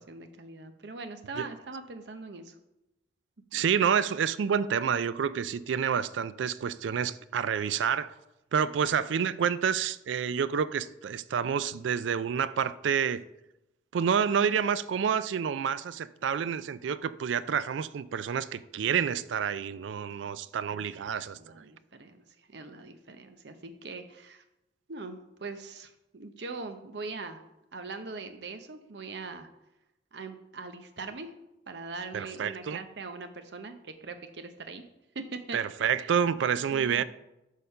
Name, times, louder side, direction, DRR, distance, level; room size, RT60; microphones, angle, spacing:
voice 1, 0.1-2.5 3.5-3.7 21.2-24.4 24.9-27.4 27.7-29.5 30.1-31.3 31.7-34.8 35.1-35.6 36.7-37.0, right 3 dB, 65° right, 0.8 m, -41 dB
voice 2, 3.5-8.1 8.5-13.2 13.9-21.4 32.1-32.8 35.5-37.0, right 7 dB, 80° right, 0.3 m, -28 dB
6.4 x 5.2 x 5.6 m
head